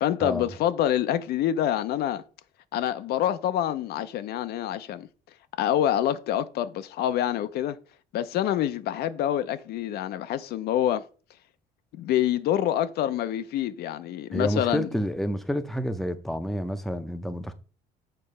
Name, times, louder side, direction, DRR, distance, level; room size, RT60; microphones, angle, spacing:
voice 1, 0.0-2.2 2.7-5.1 5.6-7.8 8.1-11.1 11.9-14.9, left 11 dB, 70° left, 0.5 m, -26 dB
voice 2, 14.3-17.5, equal, ahead, 0.6 m, -29 dB
6.7 x 2.9 x 5.3 m
cardioid pair, 110°, 17 cm